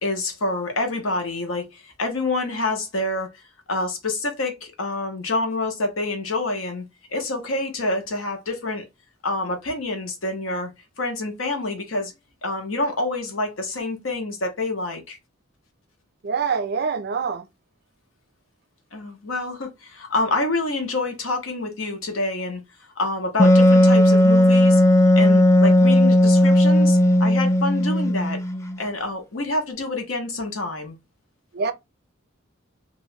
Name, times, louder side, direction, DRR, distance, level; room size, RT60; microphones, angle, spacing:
voice 1, 0.0-3.4 3.7-6.8 7.1-8.8 9.2-10.7 11.0-12.1 12.4-15.2 18.9-22.6 23.0-24.8 25.2-28.4 28.8-31.0, left 2 dB, 75° left, 1.0 m, -27 dB
voice 2, 16.2-17.5 31.5-31.7, right 5 dB, 50° right, 0.4 m, -25 dB
Wind instrument woodwind instrument, 23.4-28.8, left 1 dB, 15° left, 0.4 m, -15 dB
2.9 x 2.5 x 3.2 m
head